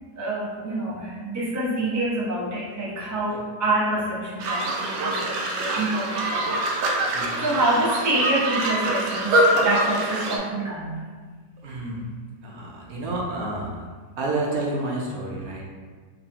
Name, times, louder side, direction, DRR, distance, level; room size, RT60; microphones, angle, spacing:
voice 1, 0.2-6.6 6.9-11.0, right 2 dB, 25° right, -7 dB, 0.4 m, -27 dB
sound 1, 4.4-10.4, right 1 dB, 85° right, 1.2 m, -24 dB
voice 2, 11.6-12.0 12.4-13.8 14.2-15.6, right 2 dB, 65° right, -3 dB, 1.1 m, -29 dB
3.9 x 3.0 x 2.9 m, 1.5 s
omnidirectional pair, 1.8 m